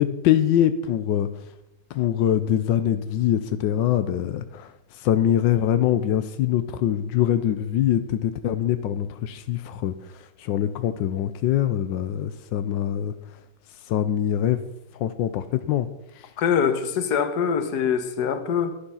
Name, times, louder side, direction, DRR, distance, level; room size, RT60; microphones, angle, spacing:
voice 1, 0.0-1.5 1.9-13.4 13.9-14.6 14.9-15.9 16.1-16.3, left 11 dB, 90° left, 1.4 m, -24 dB
voice 2, 16.4-18.7, left 7 dB, 65° left, 1.6 m, -23 dB
11.5 x 10.5 x 5.6 m
omnidirectional pair, 2.0 m